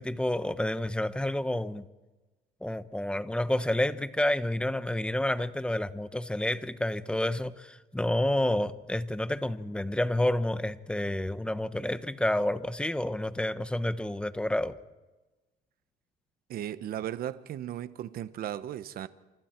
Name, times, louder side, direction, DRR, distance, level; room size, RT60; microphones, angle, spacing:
voice 1, 0.0-1.8 2.6-14.8, left 1 dB, 5° left, 1.1 m, -29 dB
voice 2, 16.5-19.1, right 11 dB, 65° right, 1.1 m, -36 dB
29.5 x 28.0 x 4.6 m
cardioid pair, 110°, 17 cm